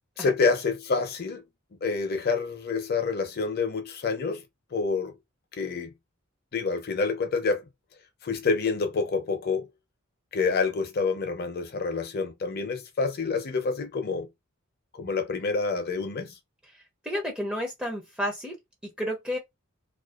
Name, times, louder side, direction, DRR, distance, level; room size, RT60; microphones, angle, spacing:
voice 1, 0.2-1.4 1.8-4.4 4.7-5.1 5.5-5.9 6.5-7.6 8.2-9.7 10.3-14.3 14.9-16.3, left 4 dB, 50° left, 0.6 m, -27 dB
voice 2, 17.0-18.6 19.0-19.4, equal, 5° right, 0.5 m, -31 dB
2.5 x 2.2 x 2.3 m
head